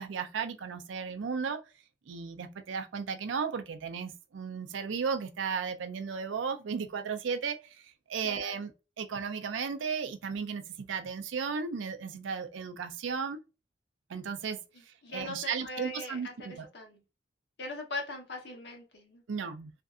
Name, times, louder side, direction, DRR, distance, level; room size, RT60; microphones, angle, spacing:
voice 1, 0.0-1.6 2.1-8.7 9.0-13.4 14.1-16.6 19.3-19.7, right 6 dB, 90° right, 0.4 m, -35 dB
voice 2, 15.0-17.0 17.6-19.2, left 2 dB, 65° left, 0.9 m, -40 dB
2.6 x 2.4 x 2.3 m
head